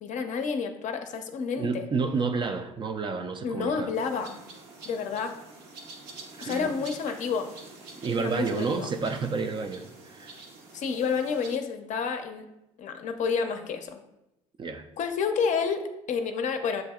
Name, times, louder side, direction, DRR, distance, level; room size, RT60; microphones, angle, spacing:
voice 1, 0.0-1.8 3.4-4.4 4.9-5.4 6.4-7.5 8.2-8.9 10.7-12.5 12.8-14.0 15.0-16.8, left 5 dB, 45° left, 6 dB, 0.5 m, -29 dB
voice 2, 1.6-3.9 6.3-6.8 8.0-10.4 14.6-14.9, right 4 dB, 30° right, 7 dB, 0.4 m, -30 dB
sound 1, 3.9-11.6, right 3 dB, 65° right, 0.8 m, -47 dB
7.4 x 2.6 x 2.3 m, 0.91 s
hypercardioid pair, 60°, 17 cm